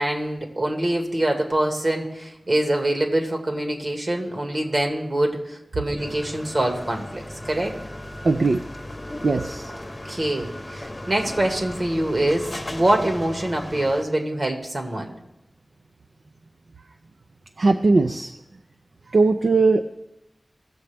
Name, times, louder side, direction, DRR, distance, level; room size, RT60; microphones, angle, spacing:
voice 1, 0.0-7.7 10.1-15.1, right 1 dB, 50° right, 2 dB, 1.7 m, -24 dB
sound 1, 6.0-14.0, left 1 dB, 25° left, 0.8 m, -36 dB
voice 2, 8.2-8.6 9.2-9.7 17.6-18.3 19.1-19.8, right 3 dB, 75° right, 7 dB, 0.4 m, -19 dB
17.0 x 6.9 x 3.3 m, 0.92 s
wide cardioid pair, 70°, 0 cm